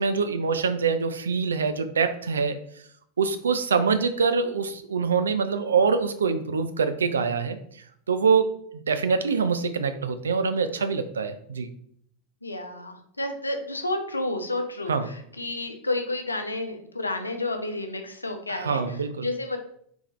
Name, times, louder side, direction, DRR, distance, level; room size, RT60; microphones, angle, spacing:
voice 1, 0.0-2.6 3.2-7.6 8.1-11.7 14.9-15.1 18.5-19.3, right 5 dB, 80° right, 10 dB, 0.3 m, -24 dB
voice 2, 12.4-19.0 19.2-19.6, left 2 dB, 90° left, 6 dB, 0.5 m, -31 dB
3.4 x 3.4 x 3.0 m, 0.66 s
figure-of-eight pair, 85°, 0 cm